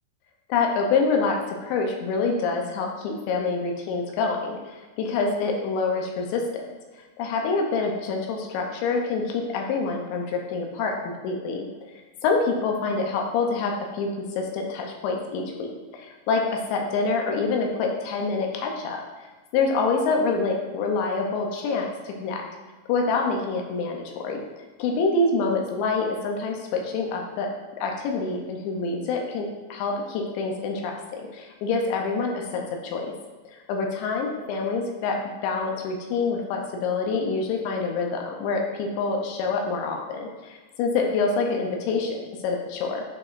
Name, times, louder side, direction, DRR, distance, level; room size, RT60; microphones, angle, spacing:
voice 1, 0.5-6.4 7.2-11.7 12.2-19.0 19.5-22.4 22.9-24.4 24.8-27.5 27.8-33.1 33.7-35.2 35.4-43.0, left 4 dB, 80° left, 1 dB, 2.9 m, -26 dB
8.5 x 4.8 x 2.5 m, 1.3 s
omnidirectional pair, 5.4 m